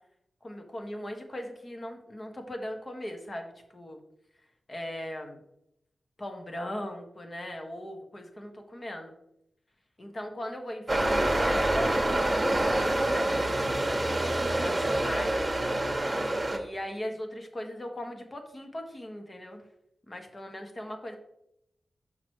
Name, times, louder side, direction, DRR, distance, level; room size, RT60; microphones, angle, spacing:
voice 1, 0.4-4.0 4.7-5.4 6.2-9.1 10.0-15.5 16.5-19.6 20.1-21.2, left 1 dB, 35° left, 4 dB, 1.6 m, -39 dB
sound 1, 10.9-16.6, right 1 dB, 20° right, 1.4 m, -26 dB
6.1 x 6.0 x 4.7 m, 0.80 s
cardioid pair, 65°, 0 cm